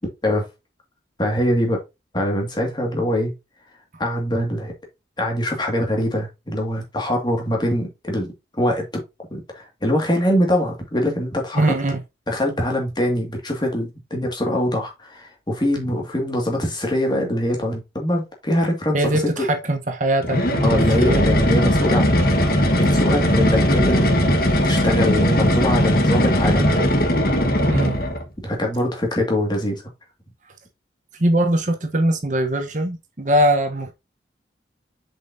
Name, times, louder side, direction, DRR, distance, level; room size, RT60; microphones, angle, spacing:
voice 1, 1.2-1.8 2.1-3.3 4.0-4.7 5.2-8.3 8.6-9.0 9.3-11.7 12.3-19.5 20.6-22.3 22.7-24.2 24.6-26.8 28.4-29.8, left 1 dB, 25° left, 2.1 m, -23 dB
voice 2, 11.5-12.0 18.9-21.2 27.7-28.0 31.2-33.9, right 1 dB, 45° right, 1.1 m, -21 dB
sound 1, 20.2-28.3, equal, 55° left, 1.4 m, -18 dB
7.4 x 5.4 x 2.7 m
head